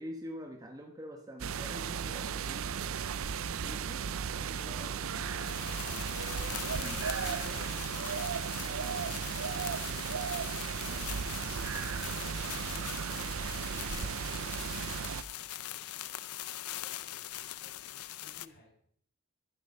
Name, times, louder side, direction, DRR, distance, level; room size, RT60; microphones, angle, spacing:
voice 1, 0.0-3.0 3.6-4.9 6.8-7.1 10.9-11.1, equal, 15° right, 3 dB, 1.2 m, -46 dB
sound 1, 1.4-15.2, right 7 dB, 65° right, 0.5 m, -35 dB
voice 2, 4.3-6.0 7.1-10.3 11.7-16.2 16.4-18.7, left 2 dB, 50° left, 0 dB, 4.6 m, -57 dB
sound 2, 5.1-10.1 11.3-11.8, right 1 dB, 90° right, 3.3 m, -50 dB
sound 3, 5.3-18.5, left 14 dB, 85° left, 0.6 m, -42 dB
12.5 x 12.0 x 5.4 m, 0.64 s
head